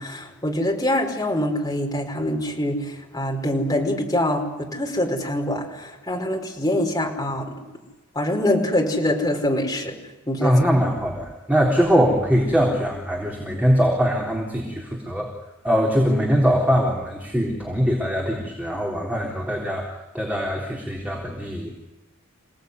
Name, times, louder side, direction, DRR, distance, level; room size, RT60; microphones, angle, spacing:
voice 1, 0.0-2.8 3.1-7.5 8.1-9.9 10.3-10.5, left 1 dB, 15° left, 0 dB, 5.1 m, -24 dB
voice 2, 10.4-15.3 15.6-19.9 20.1-21.7, equal, 5° right, -2 dB, 3.8 m, -22 dB
29.0 x 18.5 x 9.7 m, 1.1 s
head